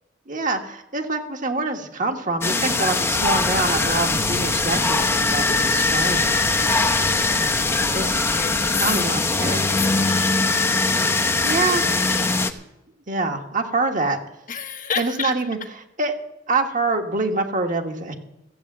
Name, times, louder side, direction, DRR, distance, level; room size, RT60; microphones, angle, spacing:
voice 1, 0.3-6.4 7.9-8.3 8.8-9.6 11.4-11.9 13.1-14.2 15.0-15.6 16.0-16.2 16.5-18.1, right 3 dB, 45° right, 4 dB, 1.5 m, -25 dB
sound 1, 2.4-12.5, left 3 dB, 15° left, 0.8 m, -21 dB
sound 2, 3.1-8.9, left 1 dB, 90° left, 1.3 m, -36 dB
voice 2, 6.7-7.5 8.3-8.8 9.4-10.4 11.2-11.8 12.1-12.4 14.5-15.4, left 6 dB, 45° left, 6 dB, 1.1 m, -32 dB
14.5 x 8.1 x 7.3 m, 0.89 s
head